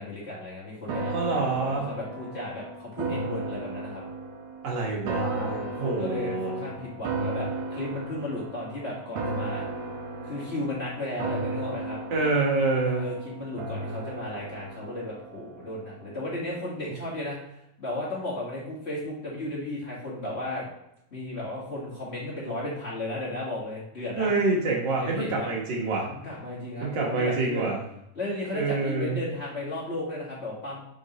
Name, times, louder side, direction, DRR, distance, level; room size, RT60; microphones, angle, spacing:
voice 1, 0.0-4.0 5.3-9.6 10.2-12.0 12.7-17.4 17.8-20.6 21.1-24.3 25.0-25.5 26.0-27.7 28.1-30.8, left 1 dB, 30° left, -7 dB, 1.3 m, -34 dB
sound 1, 0.9-16.2 16.6-16.7, right 3 dB, 75° right, 1.8 m, -35 dB
voice 2, 1.1-1.9 4.6-6.7 12.1-13.0 24.2-26.1 26.8-27.8 28.5-29.2, right 3 dB, 45° right, -2 dB, 1.6 m, -27 dB
6.3 x 5.0 x 3.0 m, 0.79 s
omnidirectional pair, 3.5 m